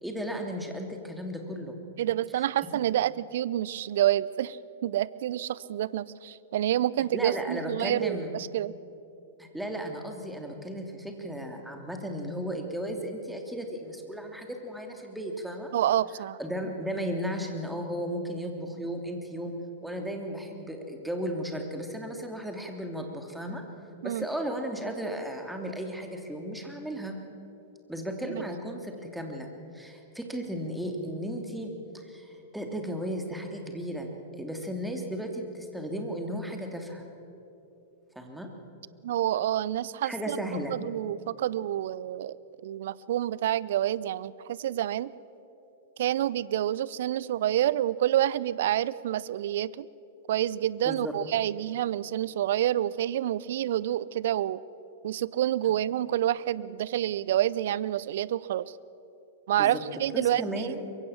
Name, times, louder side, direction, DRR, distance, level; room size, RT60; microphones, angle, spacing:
voice 1, 0.0-1.8 2.7-2.8 7.1-8.3 9.4-15.7 16.4-19.5 19.8-23.6 24.0-27.1 27.9-29.5 29.7-37.0 38.1-38.5 40.0-40.7 50.8-51.1 59.6-59.8 60.1-60.9, equal, 5° right, 3 dB, 3.0 m, -35 dB
voice 2, 2.0-8.7 15.7-16.4 24.0-24.2 28.2-28.4 39.0-40.4 40.7-42.4 42.6-45.1 46.0-49.9 50.3-54.6 55.0-58.7 59.5-60.4, right 12 dB, 60° right, 20 dB, 0.6 m, -28 dB
23.5 x 22.5 x 7.3 m, 2.9 s
figure-of-eight pair, 100°, 0 cm